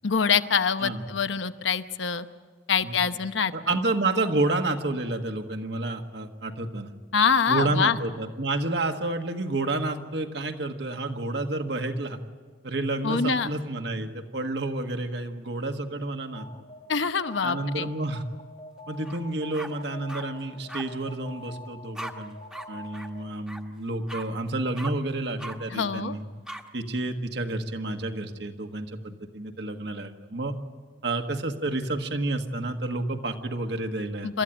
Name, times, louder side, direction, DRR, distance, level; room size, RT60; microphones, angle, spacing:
voice 1, 0.0-2.3 2.7-3.8 7.1-8.0 13.0-13.5 16.9-17.9 25.7-26.2 34.2-34.4, left 6 dB, 80° left, 10 dB, 0.9 m, -25 dB
voice 2, 3.5-6.9 7.5-12.2 12.6-16.4 17.4-18.2 18.9-22.4 22.7-26.2 26.7-30.5 31.0-34.3, right 2 dB, 65° right, 5 dB, 1.6 m, -30 dB
Alarm, 16.4-23.4, left 1 dB, 30° left, 1.1 m, -46 dB
sound 1, 19.0-19.2 19.5-20.2 20.7-20.8 21.9-22.1 22.5-22.7 22.9-23.1 23.5-23.6 24.1-24.2 24.8-24.9 25.4-25.6 26.5-26.6, right 1 dB, 5° right, 1.2 m, -38 dB
28.0 x 13.5 x 9.1 m, 1.5 s
head